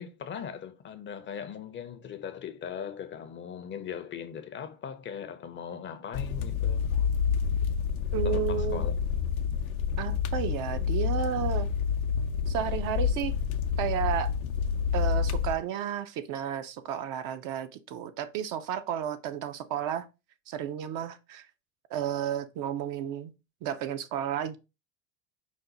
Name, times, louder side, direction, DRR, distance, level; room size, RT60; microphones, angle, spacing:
voice 1, 0.0-6.9 8.2-9.0, left 7 dB, 30° left, 0.6 m, -39 dB
sound 1, 6.1-15.5, left 7 dB, 85° left, 0.6 m, -28 dB
voice 2, 8.1-8.8 10.0-11.7 12.5-13.3 13.8-14.3 14.9-20.1 20.5-21.5 21.9-23.3 23.6-24.6, right 9 dB, 50° right, 0.6 m, -32 dB
5.2 x 2.1 x 3.9 m
hypercardioid pair, 90°, 41 cm